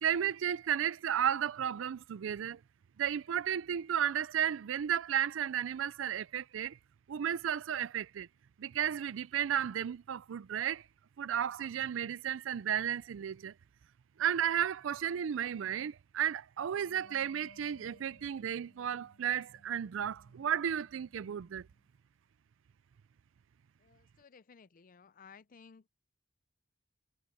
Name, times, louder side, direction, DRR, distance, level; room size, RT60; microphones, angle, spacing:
voice 1, 0.0-2.6 3.0-6.8 7.1-8.3 8.6-10.8 11.2-13.5 14.2-21.7, right 9 dB, 80° right, 0.4 m, -33 dB
Wind instrument woodwind instrument, 16.8-21.9, left 1 dB, 70° left, 3.5 m, -63 dB
voice 2, 23.8-25.9, left 5 dB, 45° left, 0.5 m, -57 dB
head